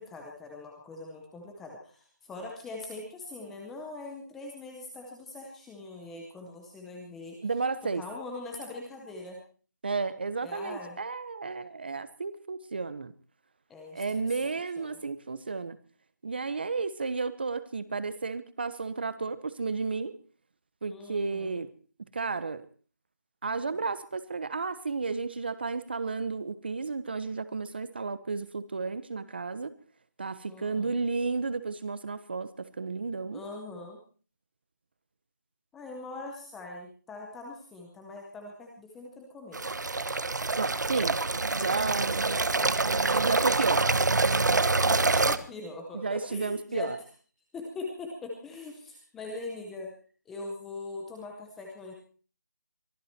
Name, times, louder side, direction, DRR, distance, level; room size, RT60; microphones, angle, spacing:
voice 1, 0.0-7.4 7.9-9.4 10.4-11.0 13.7-15.0 20.9-21.6 30.5-31.0 33.3-34.0 35.7-39.6 44.8-46.9 47.5-49.9 50.3-51.9, left 2 dB, ahead, 0 dB, 0.7 m, -42 dB
voice 2, 7.4-8.0 9.8-13.1 13.9-15.8 16.2-20.2 20.8-21.7 22.1-22.6 23.4-29.7 30.2-33.4 40.6-41.2 41.6-42.2 43.2-43.9 45.9-47.0, right 4 dB, 35° right, 14 dB, 1.1 m, -32 dB
sound 1, 39.5-45.4, right 3 dB, 75° right, 1.3 m, -26 dB
23.5 x 14.0 x 4.4 m, 0.41 s
figure-of-eight pair, 175°, 10 cm